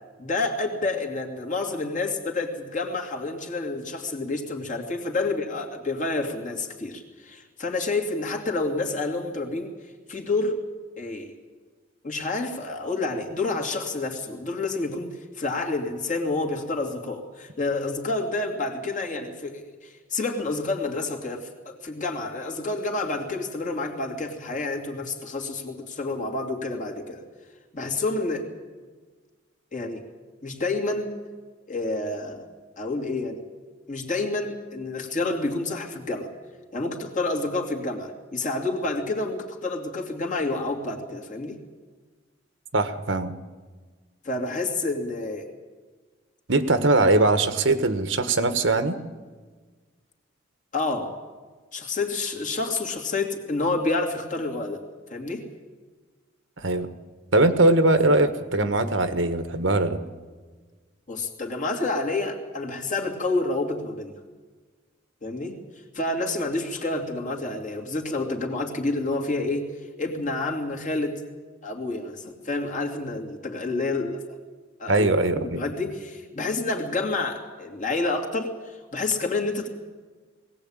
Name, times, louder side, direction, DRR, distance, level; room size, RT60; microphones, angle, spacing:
voice 1, 0.2-9.7 10.1-10.6 11.0-11.3 12.0-27.2 27.7-28.5 29.7-30.0 30.4-31.2 31.7-32.5 32.8-33.4 33.9-36.3 36.7-41.6 44.2-45.5 50.7-51.2 51.7-54.8 55.1-55.5 61.1-64.2 65.2-65.6 65.9-69.7 70.0-71.2 71.6-74.2 74.8-75.1 75.3-79.7, left 2 dB, 40° left, 1 dB, 2.9 m, -29 dB
voice 2, 42.7-43.3 46.5-49.0 56.6-56.9 57.3-60.0 74.9-75.6, right 2 dB, 65° right, 10 dB, 1.5 m, -21 dB
21.0 x 17.5 x 8.9 m, 1.4 s
head